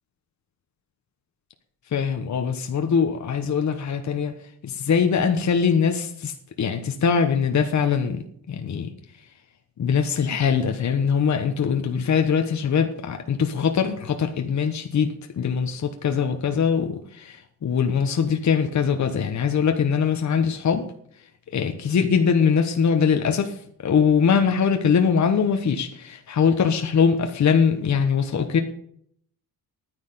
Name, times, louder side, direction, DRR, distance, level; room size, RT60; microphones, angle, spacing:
voice 1, 1.9-4.3 4.6-8.9 9.8-20.8 21.5-23.5 23.8-28.6, left 6 dB, 50° left, 5 dB, 1.3 m, -22 dB
11.0 x 9.8 x 6.8 m, 0.66 s
cardioid pair, 100°, 37 cm